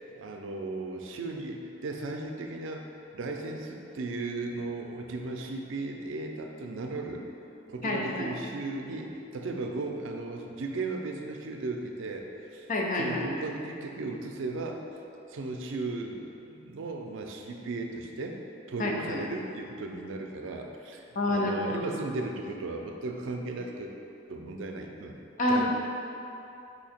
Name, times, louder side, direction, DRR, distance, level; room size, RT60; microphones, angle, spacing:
voice 1, 0.2-2.9 3.1-7.3 7.7-12.2 12.5-12.7 13.0-14.8 15.3-18.4 18.7-23.9 24.3-25.1 25.5-25.7, right 2 dB, 80° right, 2 dB, 0.4 m, -36 dB
voice 2, 7.8-8.3 12.7-13.3 18.8-19.2 21.2-21.9 25.4-25.7, left 1 dB, 40° left, -1 dB, 0.5 m, -28 dB
4.4 x 2.8 x 4.2 m, 2.8 s
head